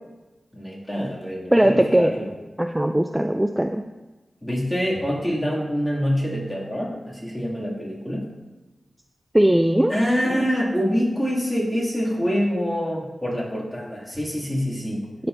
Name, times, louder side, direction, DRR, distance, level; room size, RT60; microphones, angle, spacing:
voice 1, 0.5-2.3 4.4-8.2 9.9-15.1, equal, 10° left, -6 dB, 2.4 m, -25 dB
voice 2, 1.5-2.1 2.6-3.8 9.3-9.9 15.2-15.3, right 1 dB, 15° right, 6 dB, 0.3 m, -19 dB
12.0 x 4.4 x 2.6 m, 1.1 s
cardioid pair, 50°, 0 cm